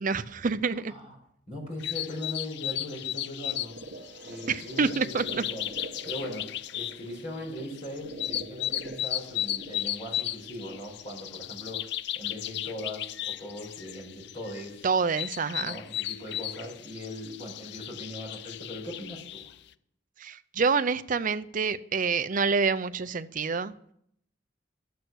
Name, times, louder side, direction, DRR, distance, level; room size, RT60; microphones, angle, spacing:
voice 1, 0.0-0.9 4.5-5.4 14.8-15.8 20.2-23.7, right 5 dB, 45° right, 13 dB, 0.5 m, -27 dB
voice 2, 1.5-3.8 4.2-5.7 6.0-14.8 15.6-19.5, left 1 dB, 40° left, 0 dB, 5.0 m, -40 dB
sound 1, 1.8-19.5, left 12 dB, 65° left, 0.4 m, -35 dB
sound 2, 3.5-11.5, right 2 dB, 65° right, 1.2 m, -46 dB
12.0 x 8.3 x 6.2 m, 0.70 s
head